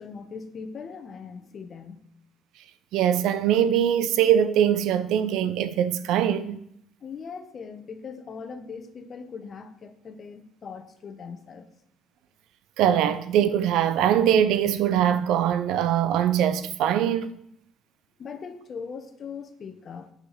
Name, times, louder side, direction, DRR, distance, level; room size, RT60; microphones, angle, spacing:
voice 1, 0.0-2.1 7.0-11.7 18.2-20.1, left 5 dB, 40° left, 1.1 m, -40 dB
voice 2, 2.9-6.6 12.8-17.3, right 10 dB, 80° right, 0.7 m, -22 dB
8.7 x 6.0 x 6.7 m
cardioid pair, 115°, 0 cm